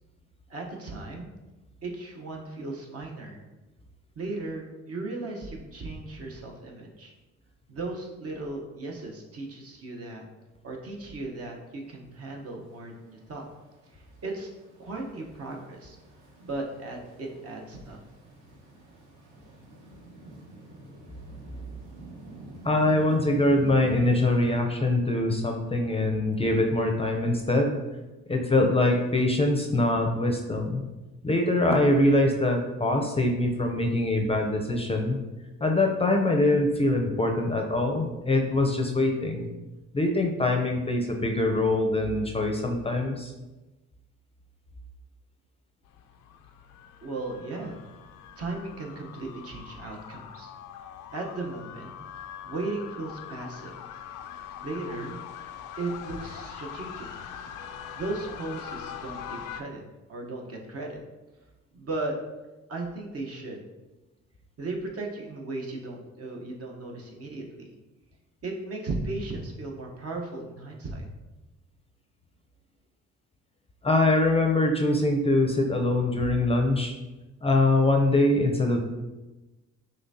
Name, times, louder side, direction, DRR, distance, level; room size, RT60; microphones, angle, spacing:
voice 1, 0.5-1.3 1.8-3.4 4.1-7.1 7.7-10.2 10.6-13.4 13.9-14.5 14.8-16.0 16.4-18.0 47.0-47.8 48.4-50.5 51.1-51.9 52.4-53.7 54.6-55.2 55.8-57.1 57.9-59.8 60.1-61.0 61.7-62.1 62.7-63.6 64.6-67.7 68.4-71.1, right 2 dB, 50° right, 0 dB, 0.9 m, -36 dB
sound 1, 11.8-24.6, right 1 dB, 80° right, 1.3 m, -46 dB
voice 2, 22.6-27.8 28.3-30.8 31.2-35.2 35.6-39.5 39.9-43.3 73.8-76.9 77.4-78.8, left 2 dB, 20° left, 2 dB, 0.5 m, -23 dB
sound 2, 45.8-59.6, left 8 dB, 85° left, 0.5 m, -42 dB
5.6 x 3.3 x 2.7 m, 1.1 s
cardioid pair, 90°, 30 cm